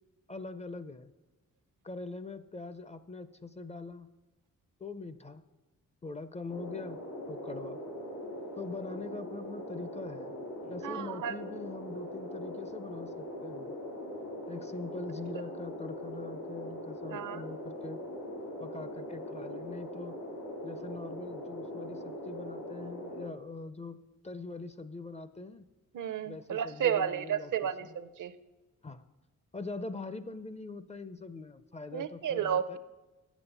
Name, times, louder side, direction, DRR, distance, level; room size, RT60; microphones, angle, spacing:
voice 1, 0.3-1.1 1.8-4.1 4.8-5.4 6.0-7.0 7.3-7.8 8.6-10.4 10.6-13.7 14.5-18.0 18.6-20.2 20.6-24.0 24.2-25.7 26.3-27.9 28.8-29.0 29.5-32.8, left 3 dB, 20° left, 12 dB, 0.4 m, -43 dB
sound 1, 6.5-23.3, equal, 80° left, 2.4 m, -41 dB
voice 2, 10.8-11.3 17.1-17.4 25.9-28.3 31.9-32.8, right 9 dB, 65° right, 13 dB, 0.6 m, -32 dB
8.4 x 7.1 x 6.9 m, 1.1 s
cardioid pair, 95°, 33 cm